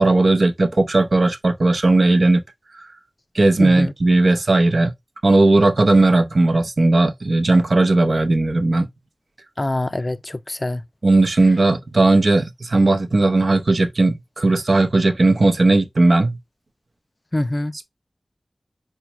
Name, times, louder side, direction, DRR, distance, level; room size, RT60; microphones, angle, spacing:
voice 1, 0.0-2.4 2.8-2.9 3.3-4.9 5.2-8.9 11.0-16.4, right 2 dB, 70° right, 0.6 m, -16 dB
voice 2, 3.6-3.9 9.6-10.8 17.3-17.8, left 1 dB, 35° left, 0.3 m, -24 dB
4.4 x 2.2 x 2.9 m
wide cardioid pair, 45°, 0 cm